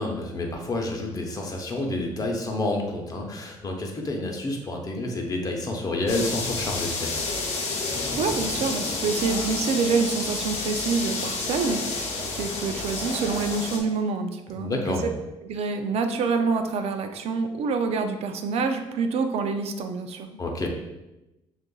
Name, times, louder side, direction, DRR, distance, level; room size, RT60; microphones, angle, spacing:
voice 1, 0.0-7.1 14.6-15.1 20.4-20.7, left 2 dB, 35° left, 1 dB, 0.8 m, -29 dB
sound 1, 6.1-13.8, left 3 dB, 75° left, 0.8 m, -30 dB
voice 2, 8.1-15.0 15.4-20.7, right 4 dB, 65° right, 7 dB, 0.5 m, -27 dB
6.5 x 2.5 x 2.3 m, 0.97 s
cardioid pair, 100°, 11 cm